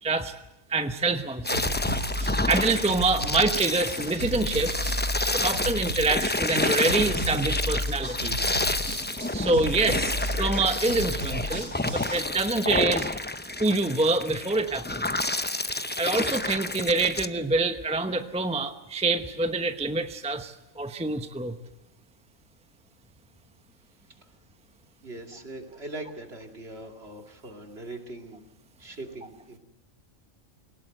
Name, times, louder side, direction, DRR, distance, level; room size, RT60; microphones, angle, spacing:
voice 1, 0.0-0.3 0.7-1.6 2.5-4.9 5.3-8.4 9.3-13.1 13.6-15.1 15.5-15.7 16.0-21.6, right 3 dB, 5° right, 8 dB, 0.8 m, -26 dB
sound 1, 1.4-17.3, left 2 dB, 15° left, 0.4 m, -29 dB
sound 2, 1.5-12.2, equal, 65° right, 5.3 m, -33 dB
voice 2, 25.0-28.4 28.8-29.6, right 2 dB, 50° right, 4 dB, 2.8 m, -41 dB
22.5 x 18.5 x 7.8 m, 0.98 s
omnidirectional pair, 1.4 m